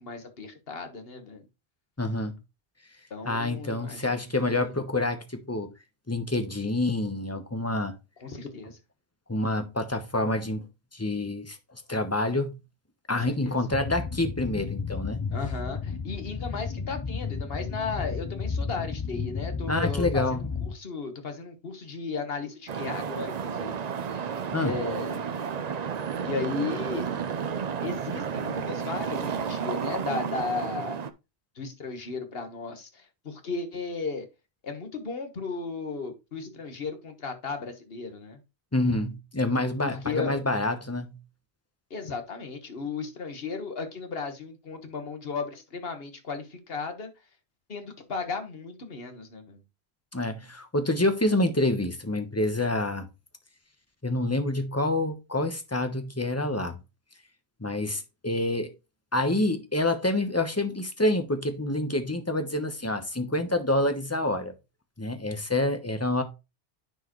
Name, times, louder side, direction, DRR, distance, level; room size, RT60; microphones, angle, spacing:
voice 1, 0.0-1.4 3.1-4.1 4.5-4.7 8.2-8.8 13.1-13.6 15.3-23.8 24.6-25.3 26.2-27.1 27.8-31.0 31.6-34.3 34.6-38.4 39.8-40.4 41.9-47.1 47.7-49.6, left 4 dB, 65° left, 1.6 m, -35 dB
voice 2, 2.0-2.3 3.2-5.7 6.1-7.9 9.3-10.7 10.9-12.6 13.1-15.2 19.7-20.5 24.5-24.8 38.7-41.2 50.1-53.1 54.0-56.8 57.6-58.7 59.1-64.5 65.0-66.2, left 2 dB, 15° left, 1.0 m, -27 dB
sound 1, 13.7-20.8, left 5 dB, 35° left, 0.3 m, -33 dB
sound 2, 22.7-31.1, right 7 dB, 45° right, 0.6 m, -32 dB
10.0 x 4.7 x 3.1 m
omnidirectional pair, 1.1 m